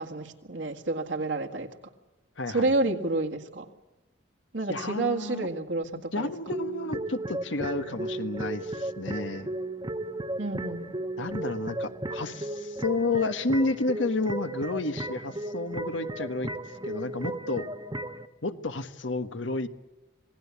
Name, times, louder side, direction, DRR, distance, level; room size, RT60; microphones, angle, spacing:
voice 1, 0.0-1.7 2.5-3.7 4.5-6.3 10.4-10.9, right 2 dB, 75° right, 3 dB, 1.9 m, -29 dB
voice 2, 2.4-2.7 4.7-5.5 6.1-9.5 11.2-16.5 16.8-17.7 18.4-19.7, left 2 dB, 90° left, 10 dB, 1.5 m, -31 dB
sound 1, 6.5-18.3, right 1 dB, 25° right, 1.0 m, -35 dB
27.0 x 18.5 x 8.4 m, 1.1 s
head